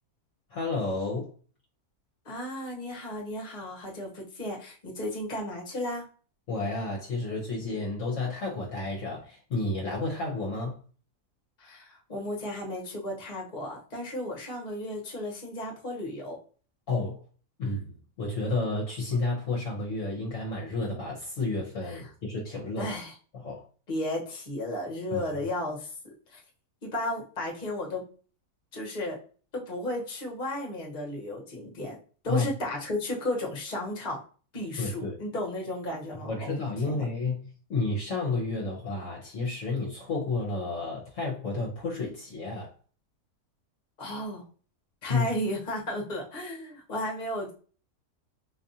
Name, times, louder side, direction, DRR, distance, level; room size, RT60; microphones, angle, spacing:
voice 1, 0.5-1.3 6.5-10.8 16.9-17.2 17.6-22.9 23.4-23.7 25.1-25.2 32.3-32.5 34.8-35.2 36.2-42.7 45.1-45.3, left 3 dB, 60° left, 1.1 m, -31 dB
voice 2, 2.2-6.0 11.6-16.4 21.8-22.0 22.8-23.1 23.9-25.9 26.3-26.4 26.8-28.0 28.7-29.2 29.5-32.0 32.2-34.2 34.5-36.6 36.9-37.1 44.0-44.4 45.0-47.5, left 1 dB, 35° left, 1.1 m, -34 dB
4.0 x 2.5 x 2.7 m
omnidirectional pair, 1.6 m